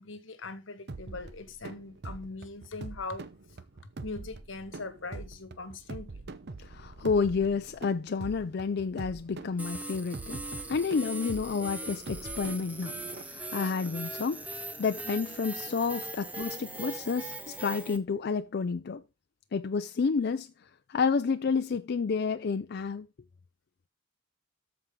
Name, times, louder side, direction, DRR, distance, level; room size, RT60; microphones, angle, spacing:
voice 1, 0.0-3.2 4.0-6.2, left 3 dB, 85° left, 1.2 m, -41 dB
sound 1, 0.9-13.2, right 3 dB, 60° right, 0.7 m, -44 dB
voice 2, 6.6-10.4 10.7-12.9 13.2-19.0 19.5-23.1, left 5 dB, 55° left, 0.4 m, -30 dB
sound 2, 9.6-18.0, right 2 dB, 10° right, 0.9 m, -40 dB
13.0 x 4.6 x 3.7 m
head